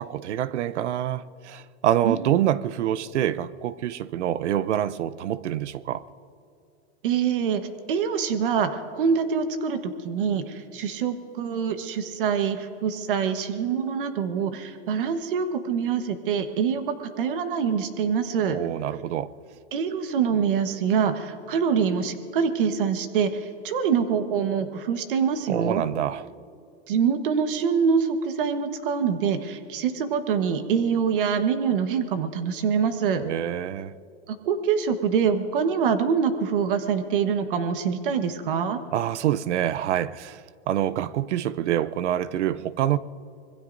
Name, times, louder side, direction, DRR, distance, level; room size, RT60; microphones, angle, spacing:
voice 1, 0.0-6.0 18.5-19.3 25.5-26.3 33.2-33.9 38.9-40.4 40.7-43.0, right 11 dB, 80° right, 0.7 m, -26 dB
voice 2, 7.0-18.6 19.7-23.3 23.6-25.8 26.9-33.2 34.4-38.8, right 6 dB, 50° right, 1.3 m, -25 dB
25.5 x 21.0 x 2.6 m
supercardioid pair, 175°, 34 cm